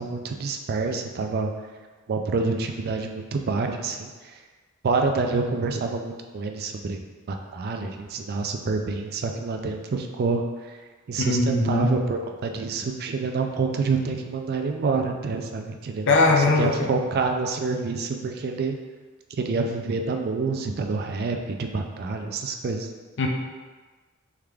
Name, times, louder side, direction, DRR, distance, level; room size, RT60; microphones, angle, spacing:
voice 1, 0.0-1.5 2.1-4.4 4.8-7.0 7.3-10.8 11.1-18.8 19.3-22.9, right 4 dB, 50° right, 4 dB, 0.4 m, -27 dB
voice 2, 11.2-11.9 16.1-16.7 23.2-23.3, left 2 dB, 60° left, 1 dB, 0.6 m, -20 dB
3.6 x 3.4 x 3.3 m, 1.3 s
head